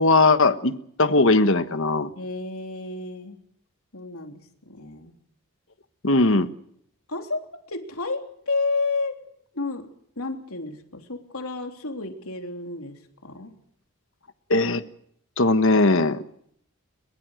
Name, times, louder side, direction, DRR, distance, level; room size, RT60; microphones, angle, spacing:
voice 1, 0.0-2.1 6.0-6.5 14.5-14.8 15.4-16.2, left 2 dB, 60° left, 11 dB, 1.4 m, -19 dB
voice 2, 2.1-3.4 3.9-5.2 7.1-9.3 9.5-9.9 10.1-13.5, left 3 dB, 75° left, 4 dB, 3.4 m, -31 dB
22.5 x 22.0 x 6.5 m, 0.69 s
head